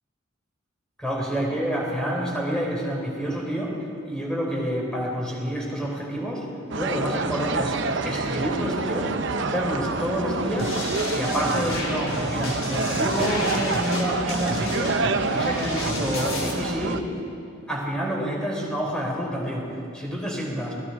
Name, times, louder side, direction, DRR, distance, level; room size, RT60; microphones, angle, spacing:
voice 1, 1.0-3.8 4.1-6.5 6.7-9.1 9.4-10.8 11.1-15.0 15.3-17.0 17.7-20.7, equal, 5° left, -2 dB, 4.7 m, -28 dB
sound 1, 6.7-17.0, right 3 dB, 60° right, 1.0 m, -27 dB
sound 2, 10.6-16.5, left 1 dB, 90° left, 4.5 m, -32 dB
28.0 x 20.5 x 4.9 m, 2.6 s
head